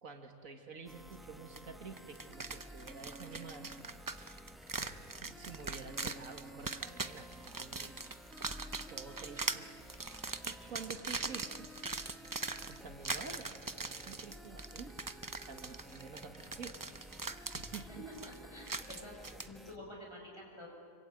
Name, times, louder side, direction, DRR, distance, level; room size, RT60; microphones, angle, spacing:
voice 1, 0.0-3.7 4.1-4.5 4.8-8.4 8.9-9.7 10.4-11.7 12.7-15.0 15.4-17.9, right 5 dB, 70° right, 5 dB, 2.1 m, -49 dB
sound 1, 0.9-19.8, equal, ahead, 0.8 m, -53 dB
sound 2, 1.6-1.7 2.0-19.5, right 3 dB, 30° right, 0.4 m, -42 dB
voice 2, 17.7-20.7, left 1 dB, 20° left, -1 dB, 6.5 m, -49 dB
26.0 x 23.5 x 9.2 m, 2.3 s
omnidirectional pair, 1.5 m